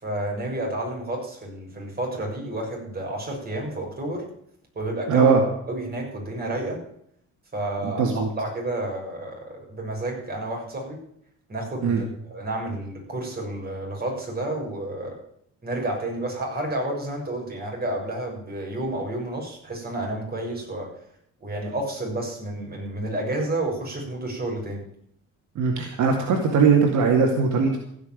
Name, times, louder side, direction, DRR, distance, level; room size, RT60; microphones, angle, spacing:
voice 1, 0.0-4.2 4.7-5.3 5.7-6.8 7.5-11.0 11.5-15.1 15.6-20.9 21.4-24.8, right 1 dB, 30° right, -1 dB, 6.5 m, -30 dB
voice 2, 5.1-5.4 7.8-8.3 11.8-12.0 25.6-27.8, right 5 dB, 75° right, 2 dB, 2.3 m, -20 dB
15.0 x 6.3 x 9.1 m, 0.71 s
cardioid pair, 90°, 30 cm